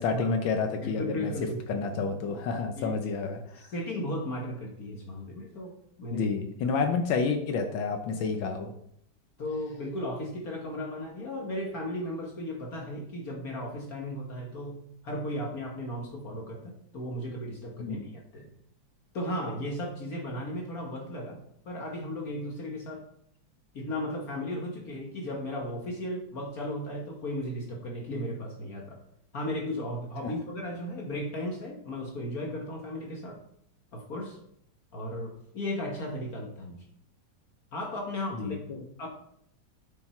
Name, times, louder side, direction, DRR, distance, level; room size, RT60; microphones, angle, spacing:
voice 1, 0.0-1.3 1.7-3.6 6.1-8.7 17.8-18.1 30.2-30.3 38.4-38.8, left 5 dB, 80° left, 5 dB, 1.6 m, -30 dB
voice 2, 0.8-1.9 2.8-3.0 3.6-6.3 9.4-18.5 19.1-21.4 21.6-23.1 23.7-29.0 29.3-33.4 33.9-34.4 34.9-36.8 37.7-38.6 39.0-39.1, left 1 dB, 50° left, 1 dB, 1.7 m, -35 dB
8.7 x 6.1 x 4.4 m, 0.70 s
omnidirectional pair, 2.1 m